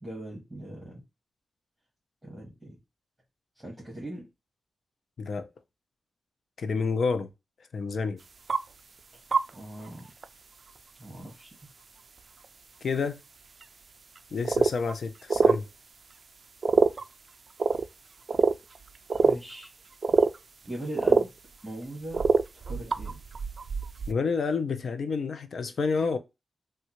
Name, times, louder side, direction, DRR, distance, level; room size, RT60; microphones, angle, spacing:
voice 1, 0.0-1.0 2.2-2.8 3.5-4.3 9.1-9.2 9.5-10.1 11.0-11.6 19.2-19.7 20.6-21.3 21.6-22.2 22.5-23.2, right 1 dB, 10° right, 1.5 m, -40 dB
voice 2, 5.2-5.5 6.6-7.3 7.7-8.2 12.8-13.2 14.3-15.6 24.1-26.2, left 5 dB, 65° left, 0.5 m, -29 dB
sound 1, 8.5-8.6 9.3-9.5 9.8-9.9 10.2-10.3 12.4-12.5 13.6-13.7 14.2-14.3 14.4-14.9 15.3-15.6 16.6-17.0 17.6-17.9 18.3-19.4 19.6-19.7 20.0-20.4 20.7-20.8 21.0-21.3 22.1-24.1, right 4 dB, 50° right, 0.3 m, -24 dB
3.6 x 2.3 x 2.9 m
wide cardioid pair, 100°, 0 cm